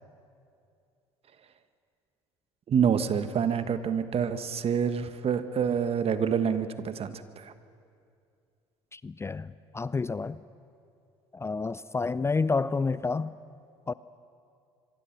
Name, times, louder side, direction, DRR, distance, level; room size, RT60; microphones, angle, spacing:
voice 1, 2.7-7.5, right 7 dB, 45° right, 1.4 m, -27 dB
voice 2, 8.9-10.4 11.3-13.3 13.9-14.0, left 4 dB, 20° left, 0.5 m, -29 dB
25.5 x 23.5 x 6.1 m
hypercardioid pair, 60°, 14 cm